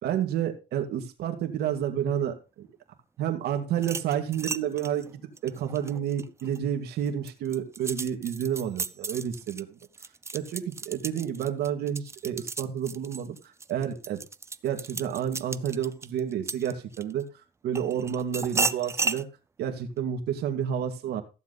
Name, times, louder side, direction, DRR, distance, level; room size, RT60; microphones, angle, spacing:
voice 1, 0.0-2.7 3.2-9.8 10.3-13.4 13.7-14.2 14.6-17.3 17.6-19.3 19.6-21.2, right 9 dB, 75° right, 5 dB, 2.2 m, -30 dB
sound 1, 3.7-6.6 7.1-17.2 17.7-19.2, right 4 dB, 15° right, 0.5 m, -34 dB
14.5 x 7.4 x 4.1 m, 0.31 s
cardioid pair, 110°, 17 cm